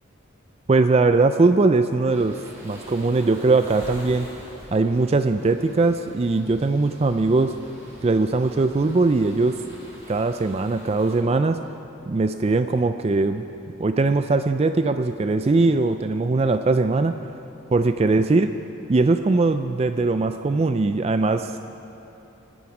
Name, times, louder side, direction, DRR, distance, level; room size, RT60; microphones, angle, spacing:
voice 1, 0.7-2.4 2.6-4.3 4.7-7.5 8.0-9.6 10.1-11.6 12.1-13.4 13.8-17.2 17.7-18.5 18.9-21.6, right 3 dB, 30° right, 9 dB, 0.3 m, -20 dB
sound 1, 2.1-11.2, equal, 15° right, 4.4 m, -45 dB
25.0 x 10.0 x 4.9 m, 3.0 s
head